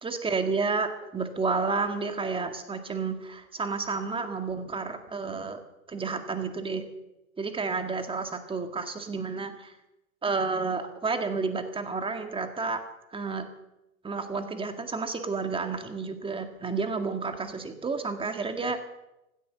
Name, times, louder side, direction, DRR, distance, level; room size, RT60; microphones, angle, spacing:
voice 1, 0.0-5.6 5.9-6.8 7.4-9.7 10.2-12.8 13.1-13.5 14.0-18.8, right 4 dB, 15° right, 7 dB, 1.9 m, -31 dB
16.0 x 12.5 x 6.8 m, 0.92 s
hypercardioid pair, 115°, 40 cm